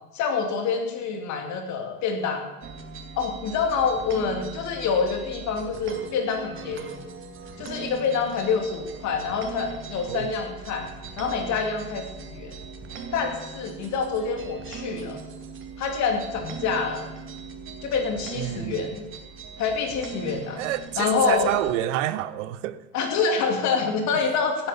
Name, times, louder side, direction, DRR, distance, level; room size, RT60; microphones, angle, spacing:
voice 1, 0.1-2.5 3.2-7.0 7.6-10.9 11.2-12.5 13.1-15.2 15.8-17.1 17.8-19.1 19.6-20.6 21.0-21.5 22.9-24.7, left 5 dB, 35° left, 2.6 m, -26 dB
sound 1, 2.6-21.8, right 5 dB, 25° right, 2.2 m, -40 dB
voice 2, 18.3-18.8 20.6-22.8, right 13 dB, 50° right, 1.0 m, -28 dB
16.5 x 9.5 x 7.4 m
figure-of-eight pair, 85°, 49 cm